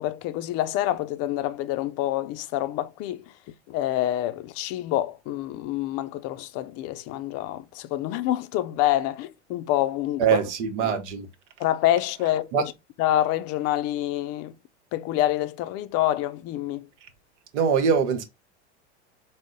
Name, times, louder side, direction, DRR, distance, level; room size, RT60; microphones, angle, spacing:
voice 1, 0.0-3.2 3.7-10.2 11.6-12.7 13.0-14.5 14.9-16.9, left 13 dB, 45° left, 0.4 m, -27 dB
voice 2, 10.2-11.3 12.5-12.6 17.5-18.2, right 7 dB, 80° right, 0.9 m, -23 dB
4.0 x 2.1 x 3.6 m
hypercardioid pair, 100°, 35 cm